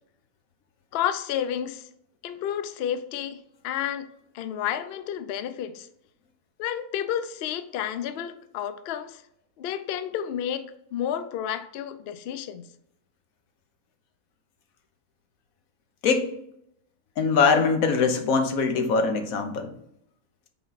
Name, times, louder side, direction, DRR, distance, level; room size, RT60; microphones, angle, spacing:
voice 1, 0.9-1.9 2.2-4.1 4.3-5.9 6.6-9.2 9.6-12.7, left 10 dB, 85° left, 0.5 m, -31 dB
voice 2, 17.2-19.7, left 5 dB, 65° left, 1.2 m, -22 dB
5.8 x 4.2 x 4.0 m
omnidirectional pair, 1.6 m